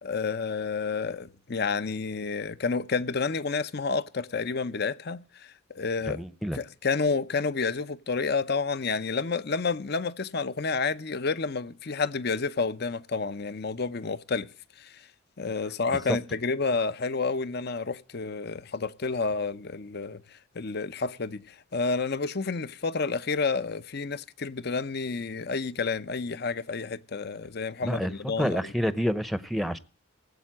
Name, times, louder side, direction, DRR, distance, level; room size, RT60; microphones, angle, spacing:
voice 1, 0.0-6.2 6.5-14.5 14.8-15.0 15.4-28.7, left 4 dB, 50° left, 0.7 m, -30 dB
voice 2, 6.1-6.6 27.8-29.8, equal, ahead, 0.7 m, -28 dB
19.0 x 8.2 x 7.5 m
head